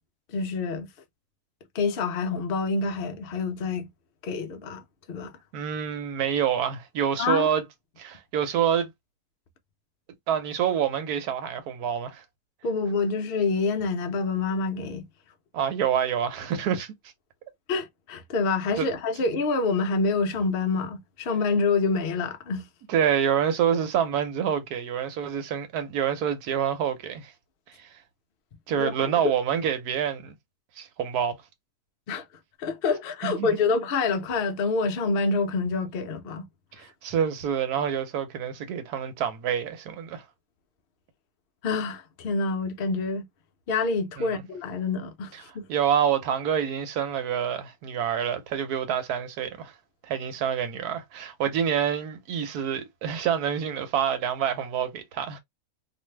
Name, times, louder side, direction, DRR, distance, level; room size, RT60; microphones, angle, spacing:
voice 1, 0.3-0.9 1.7-3.9 4.2-4.8 5.1-5.3 7.2-7.5 12.6-15.1 17.7-22.6 28.8-29.1 32.1-32.2 32.6-36.5 41.6-43.2 43.7-45.6, left 4 dB, 85° left, 0.5 m, -27 dB
voice 2, 5.5-7.6 8.0-8.9 10.3-12.2 15.5-16.9 18.8-18.9 22.9-27.3 27.7-28.0 28.7-30.3 30.8-31.4 33.2-33.6 36.8-40.2 44.2-44.4 45.3-49.7 50.1-55.4, right 8 dB, 70° right, 1.2 m, -27 dB
2.6 x 2.5 x 3.1 m
omnidirectional pair, 1.8 m